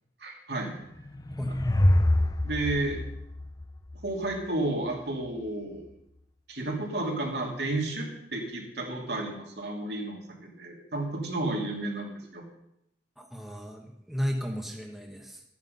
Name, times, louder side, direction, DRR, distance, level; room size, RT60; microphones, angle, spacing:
voice 1, 0.2-0.7 2.4-3.0 4.0-5.8 6.5-12.4, right 2 dB, 65° right, 0 dB, 3.0 m, -32 dB
sound 1, 0.9-4.3, left 1 dB, 20° left, 0.6 m, -26 dB
voice 2, 13.2-15.4, equal, ahead, 1 dB, 1.2 m, -34 dB
13.5 x 9.4 x 5.5 m, 0.79 s
head